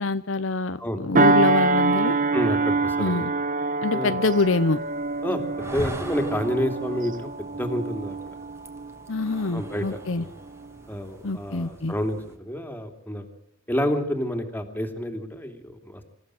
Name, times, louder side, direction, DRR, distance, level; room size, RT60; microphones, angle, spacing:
voice 1, 0.0-2.2 3.0-3.3 3.8-4.8 9.1-10.2 11.2-11.9, left 3 dB, 70° left, 12 dB, 0.9 m, -25 dB
sound 1, 1.2-10.0 10.5-10.7, right 3 dB, 40° right, 1.1 m, -25 dB
voice 2, 2.3-3.2 3.9-4.1 5.2-8.3 9.5-10.3 10.9-13.2 13.7-16.0, equal, 10° left, 5 dB, 2.9 m, -29 dB
sound 2, 4.2-12.4, right 1 dB, 15° right, 2.3 m, -42 dB
27.0 x 15.0 x 7.9 m, 0.71 s
head